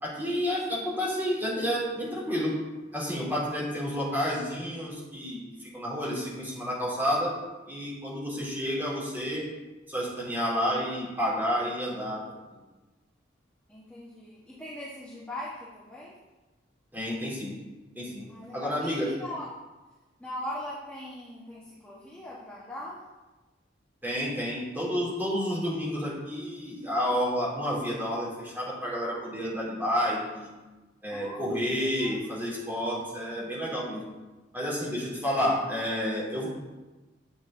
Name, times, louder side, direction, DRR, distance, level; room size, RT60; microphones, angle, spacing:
voice 1, 0.0-2.6 2.9-7.3 7.7-9.5 9.9-12.2 16.9-17.5 17.9-18.2 18.5-19.1 24.0-30.5 31.0-34.0 34.5-36.5, equal, 10° right, -7 dB, 3.0 m, -30 dB
voice 2, 13.7-16.2 18.3-19.5 20.2-23.0 31.1-31.6 31.9-32.3, left 1 dB, 5° left, -8 dB, 1.2 m, -40 dB
9.1 x 7.2 x 3.7 m, 1.2 s
head